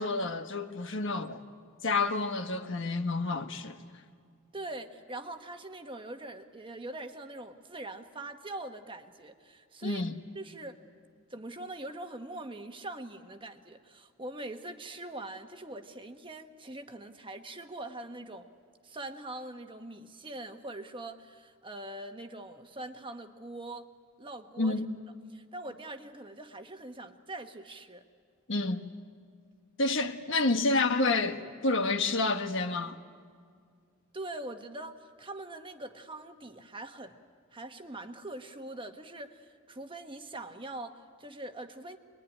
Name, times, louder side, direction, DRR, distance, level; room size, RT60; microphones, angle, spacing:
voice 1, 0.0-1.4 1.8-3.8 9.8-10.2 24.6-24.9 28.5-28.9 29.8-33.0, left 3 dB, 60° left, 1.4 m, -29 dB
voice 2, 4.5-10.1 10.3-10.8 11.3-18.5 18.8-23.9 24.2-24.8 25.3-28.0 34.1-37.2 37.5-42.0, right 2 dB, 25° right, 1.3 m, -43 dB
26.5 x 22.0 x 9.9 m
head